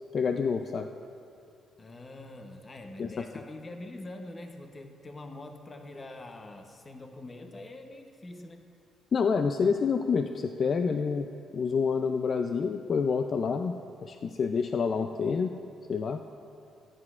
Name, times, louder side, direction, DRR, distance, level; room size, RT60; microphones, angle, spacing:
voice 1, 0.1-0.9 3.0-3.2 9.1-11.3 11.5-15.6 15.9-16.2, left 5 dB, 50° left, 7 dB, 0.4 m, -28 dB
voice 2, 1.8-8.7, left 2 dB, 30° left, 5 dB, 0.8 m, -44 dB
18.5 x 9.9 x 2.4 m, 2.5 s
cardioid pair, 90°, 0 cm